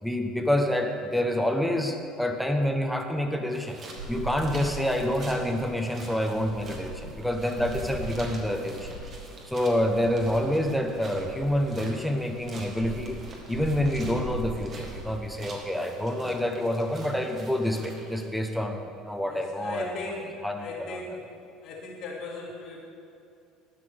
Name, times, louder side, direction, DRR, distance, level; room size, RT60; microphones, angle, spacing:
voice 1, 0.0-3.8 4.1-8.9 9.5-13.2 13.5-21.0, left 1 dB, ahead, 3 dB, 1.1 m, -27 dB
sound 1, 3.5-18.3, right 2 dB, 35° right, 1.8 m, -46 dB
sound 2, 3.9-11.9 12.2-15.6, right 2 dB, 85° right, 2.7 m, -40 dB
voice 2, 19.3-21.2 21.6-22.8, left 3 dB, 60° left, -7 dB, 2.0 m, -38 dB
11.5 x 6.0 x 7.9 m, 2.6 s
cardioid pair, 130°, 0 cm